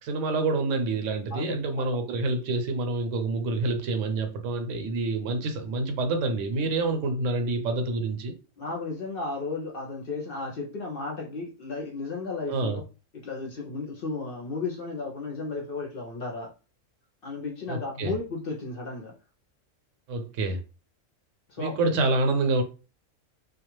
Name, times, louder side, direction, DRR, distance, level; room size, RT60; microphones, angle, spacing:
voice 1, 0.0-8.3 12.5-12.8 17.7-18.1 20.1-20.6 21.6-22.6, right 3 dB, 75° right, 0.9 m, -27 dB
voice 2, 1.3-2.0 8.6-12.8 13.1-16.5 17.2-19.1 21.5-22.0, left 3 dB, 60° left, 0.6 m, -34 dB
2.3 x 2.2 x 3.0 m
omnidirectional pair, 1.3 m